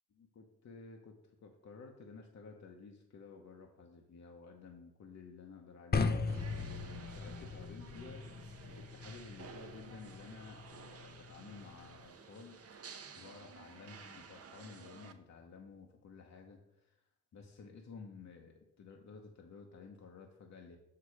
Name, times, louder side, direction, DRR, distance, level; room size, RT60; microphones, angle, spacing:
voice 1, 0.1-8.3 8.7-17.0 17.3-20.8, left 4 dB, 50° left, 2 dB, 1.0 m, -53 dB
sound 1, 5.9-12.1, left 4 dB, 30° left, 0.6 m, -39 dB
sound 2, 6.3-15.1, right 5 dB, 45° right, 0.8 m, -53 dB
6.0 x 4.8 x 4.8 m, 0.84 s
hypercardioid pair, 45°, 34 cm